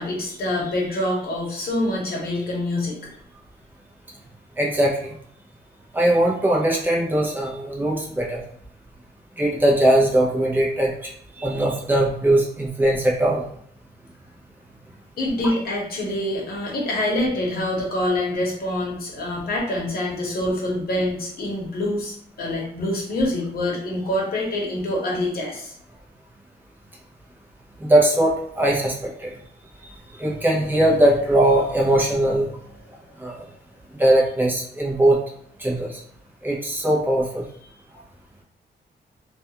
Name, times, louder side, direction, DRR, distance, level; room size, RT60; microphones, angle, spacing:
voice 1, 0.0-3.0 15.2-25.7, left 1 dB, 55° left, -3 dB, 0.9 m, -25 dB
voice 2, 4.6-5.1 5.9-8.4 9.4-11.1 11.4-13.4 27.8-29.3 30.2-32.5 33.2-33.4 33.9-35.2 35.6-35.9 36.4-37.4, right 1 dB, 10° right, -3 dB, 0.6 m, -20 dB
2.4 x 2.3 x 2.8 m, 0.67 s
wide cardioid pair, 145°, 18 cm